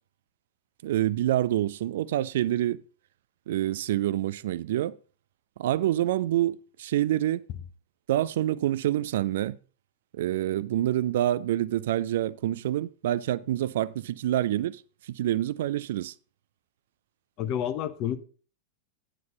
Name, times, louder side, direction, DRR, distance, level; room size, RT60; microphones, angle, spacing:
voice 1, 0.8-2.8 3.5-5.0 5.6-7.4 8.1-9.6 10.2-16.1, right 13 dB, 55° right, 0.4 m, -27 dB
voice 2, 17.4-18.2, left 10 dB, 40° left, 0.9 m, -29 dB
9.3 x 9.0 x 3.9 m
figure-of-eight pair, 90°, 0 cm